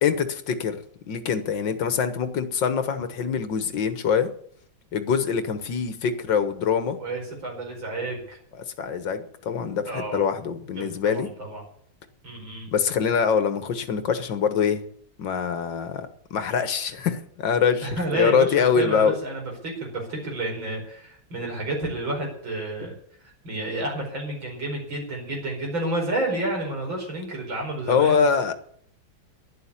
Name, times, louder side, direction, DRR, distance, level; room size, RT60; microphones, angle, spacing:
voice 1, 0.0-0.8 1.1-4.3 4.9-7.0 8.8-11.3 12.7-14.8 15.2-19.1 27.9-28.6, left 6 dB, 70° left, 10 dB, 1.9 m, -24 dB
voice 2, 7.0-8.4 9.9-10.3 10.7-11.6 12.2-12.7 17.8-28.2, right 2 dB, 75° right, 1 dB, 5.6 m, -30 dB
11.5 x 10.5 x 8.4 m, 0.64 s
omnidirectional pair, 2.1 m